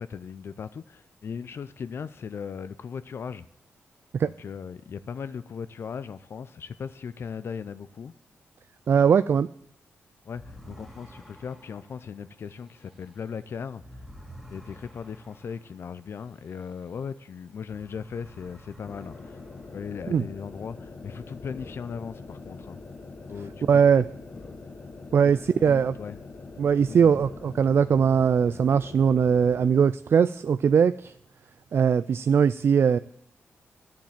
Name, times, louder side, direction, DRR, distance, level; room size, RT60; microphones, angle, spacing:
voice 1, 0.0-3.4 4.2-8.1 10.3-13.8 14.5-19.4 19.7-22.8 23.3-24.0 25.6-26.2 26.8-27.2, left 6 dB, 60° left, 13 dB, 0.5 m, -38 dB
voice 2, 8.9-9.5 20.1-20.2 23.7-24.0 25.1-25.9 26.6-31.1 31.7-33.0, right 7 dB, 55° right, 14 dB, 0.3 m, -20 dB
sound 1, 10.3-17.2 17.5-20.2, equal, 5° right, 2.0 m, -50 dB
sound 2, 18.8-29.9, left 3 dB, 40° left, 1.3 m, -43 dB
10.0 x 7.3 x 7.3 m, 0.70 s
cardioid pair, 90°, 5 cm